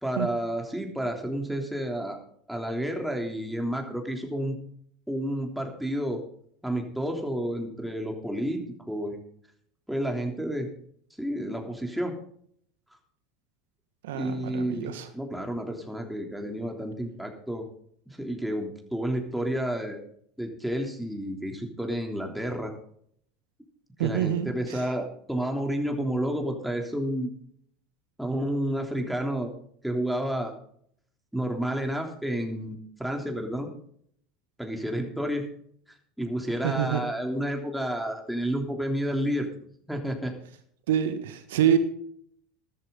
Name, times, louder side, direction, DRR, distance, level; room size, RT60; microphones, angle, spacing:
voice 1, 0.0-2.2 2.5-4.6 5.1-6.2 6.6-8.6 8.9-9.2 9.9-10.7 11.2-12.1 14.1-17.7 18.1-20.0 20.4-22.7 24.0-27.3 28.2-29.5 29.8-30.5 31.3-33.7 34.6-35.5 36.2-39.5 39.9-40.3, right 1 dB, ahead, 2 dB, 3.3 m, -30 dB
voice 2, 14.0-15.1 24.0-24.8 36.6-37.0 40.9-41.8, right 10 dB, 70° right, 10 dB, 1.5 m, -26 dB
13.5 x 12.5 x 4.0 m, 0.63 s
hypercardioid pair, 80°, 0 cm